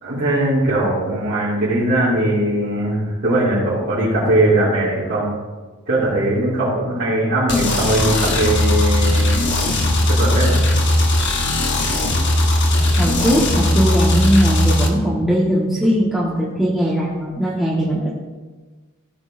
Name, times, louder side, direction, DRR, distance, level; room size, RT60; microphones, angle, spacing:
voice 1, 0.0-5.3 5.9-10.6, right 1 dB, 55° right, -12 dB, 2.8 m, -20 dB
sound 1, 7.5-14.9, left 1 dB, 55° left, 1.1 m, -18 dB
voice 2, 13.0-18.1, equal, ahead, -9 dB, 1.3 m, -19 dB
14.5 x 6.4 x 2.6 m, 1.3 s
head